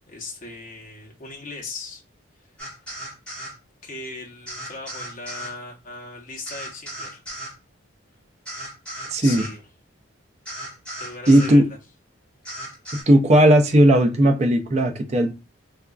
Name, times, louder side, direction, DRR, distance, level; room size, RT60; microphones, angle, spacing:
voice 1, 0.1-2.0 3.8-7.2 9.2-9.6 11.0-11.8, left 3 dB, 40° left, -1 dB, 0.8 m, -38 dB
sound 1, 2.6-3.5 4.5-5.5 6.5-7.5 8.5-9.5 10.5-11.5 12.4-13.0, right 1 dB, 5° left, 1.3 m, -36 dB
voice 2, 9.1-9.4 11.3-11.7 12.9-15.3, right 1 dB, 35° right, 4 dB, 0.4 m, -16 dB
4.0 x 2.4 x 2.3 m, 0.29 s
head